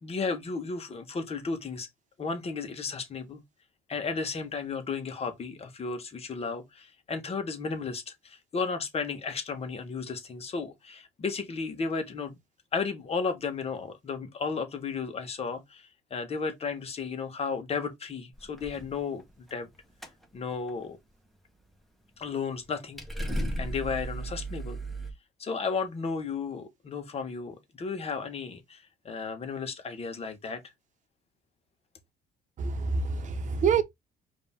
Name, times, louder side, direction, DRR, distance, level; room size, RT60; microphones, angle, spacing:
voice 1, 0.0-1.9 2.2-3.4 3.9-12.3 12.7-19.2 19.5-19.7 20.3-21.0 22.2-23.0 23.6-24.8 25.4-30.6, left 5 dB, 35° left, 1.4 m, -34 dB
sound 1, 18.4-19.0 19.3-19.7 20.0-20.2 20.5-20.7 22.6-22.7 23.0-25.1, right 1 dB, ahead, 1.3 m, -34 dB
voice 2, 32.6-33.8, right 5 dB, 45° right, 0.9 m, -26 dB
5.1 x 2.9 x 3.6 m
cardioid pair, 110°, 17 cm